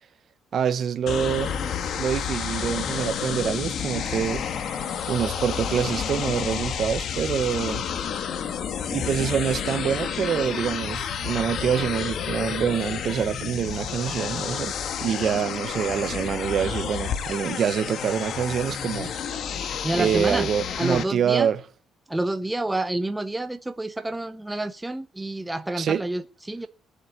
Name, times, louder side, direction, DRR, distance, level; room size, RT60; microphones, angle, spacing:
voice 1, 0.5-1.5 2.0-4.4 4.8-7.8 8.9-14.7 15.0-19.1 19.9-21.6 25.8-26.0, right 8 dB, 50° right, 1.3 m, -26 dB
sound 1, 1.1-21.0, left 7 dB, 55° left, 1.7 m, -30 dB
voice 2, 19.8-20.5 20.8-21.5 22.1-26.7, right 1 dB, 10° right, 0.8 m, -28 dB
18.5 x 8.1 x 8.3 m
cardioid pair, 135°, 0 cm